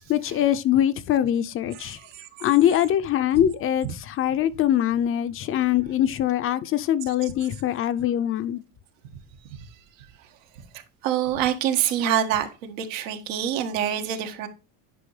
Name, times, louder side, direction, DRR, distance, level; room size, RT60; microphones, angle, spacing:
voice 1, 0.1-2.0 2.4-8.6, left 11 dB, 35° left, 0.6 m, -23 dB
voice 2, 1.7-2.8 3.3-3.5 3.8-3.9 7.0-7.5 11.0-14.5, right 10 dB, 85° right, 1.7 m, -27 dB
10.0 x 5.2 x 3.2 m
cardioid pair, 140°, 38 cm